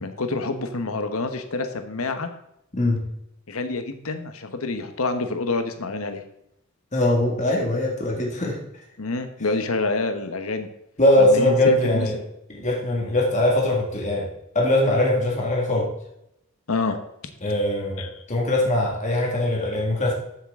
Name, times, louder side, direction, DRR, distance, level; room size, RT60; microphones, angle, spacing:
voice 1, 0.0-2.3 3.5-6.2 9.0-10.7 11.2-12.2 16.7-17.0 18.0-18.1, left 3 dB, 75° left, 7 dB, 1.1 m, -27 dB
voice 2, 6.9-8.6 11.0-12.2 12.5-15.9 17.4-20.1, left 1 dB, 35° left, -2 dB, 2.1 m, -21 dB
14.0 x 7.5 x 3.7 m, 0.81 s
head